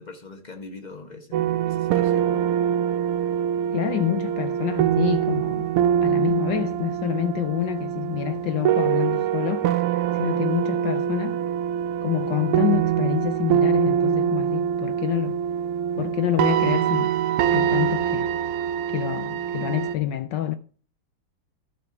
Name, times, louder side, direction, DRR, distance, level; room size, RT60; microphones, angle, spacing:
voice 1, 0.0-2.5, left 3 dB, 40° left, 0.6 m, -42 dB
sound 1, 1.3-20.0, right 9 dB, 85° right, 1.6 m, -24 dB
voice 2, 3.7-5.7 6.0-9.7 10.2-11.4 12.0-15.4 16.0-17.1 17.5-18.3 18.9-20.5, left 13 dB, 75° left, 1.0 m, -27 dB
12.5 x 4.2 x 5.8 m
omnidirectional pair, 2.4 m